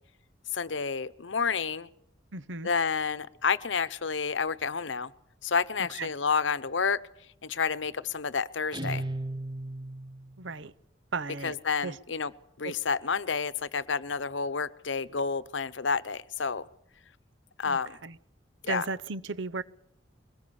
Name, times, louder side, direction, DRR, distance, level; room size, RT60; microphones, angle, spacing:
voice 1, 0.5-1.9 2.6-5.1 5.4-7.0 7.4-9.0 11.4-12.3 12.6-16.7 17.6-18.0 18.6-18.8, left 5 dB, 80° left, 0.9 m, -30 dB
voice 2, 2.3-2.7 6.0-6.1 10.4-10.7 11.1-11.5 11.8-12.0 12.6-12.7 17.6-18.2 18.7-19.6, right 4 dB, 85° right, 0.9 m, -35 dB
Guitar, 8.7-10.4, right 1 dB, 25° right, 1.0 m, -35 dB
22.0 x 20.0 x 7.0 m
head